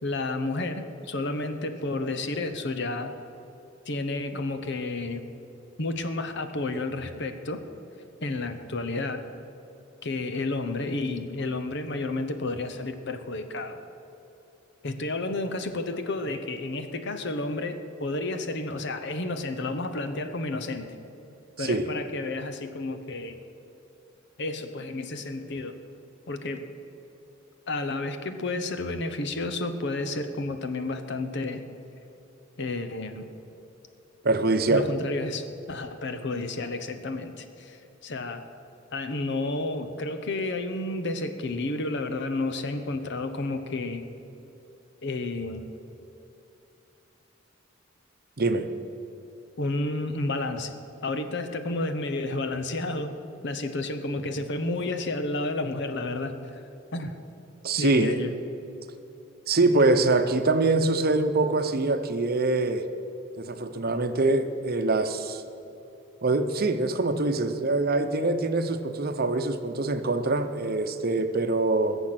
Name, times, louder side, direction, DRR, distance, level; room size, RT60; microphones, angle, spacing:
voice 1, 0.0-3.1 3.9-5.2 5.8-7.6 8.2-9.2 10.0-13.8 14.8-20.9 21.6-23.4 24.4-25.7 26.3-26.7 27.7-31.6 32.6-33.3 34.7-38.4 38.9-44.1 45.0-45.7 49.6-50.7 51.0-53.2 53.4-56.6 56.9-57.1 57.8-58.3, left 2 dB, 60° left, 8 dB, 1.0 m, -31 dB
voice 2, 21.6-21.9 34.2-34.9 48.4-48.7 57.6-58.2 59.5-62.8 63.4-65.4 66.2-72.0, right 2 dB, 50° right, 8 dB, 0.8 m, -24 dB
21.0 x 7.1 x 6.0 m, 2.8 s
head